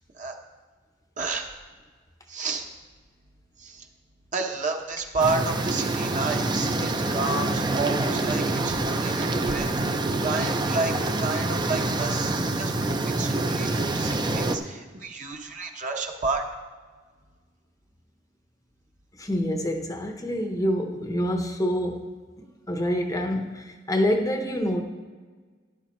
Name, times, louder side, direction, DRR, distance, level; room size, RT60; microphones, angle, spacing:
voice 1, 1.2-1.5 2.3-2.6 3.6-3.8 4.3-9.7 10.2-10.9 11.2-16.4, right 3 dB, 40° right, 2 dB, 1.1 m, -30 dB
sound 1, 5.2-14.6, right 2 dB, 25° right, 0.6 m, -26 dB
voice 2, 19.2-22.1 22.4-24.8, equal, 20° left, 4 dB, 0.8 m, -27 dB
13.0 x 11.0 x 3.1 m, 1.5 s
head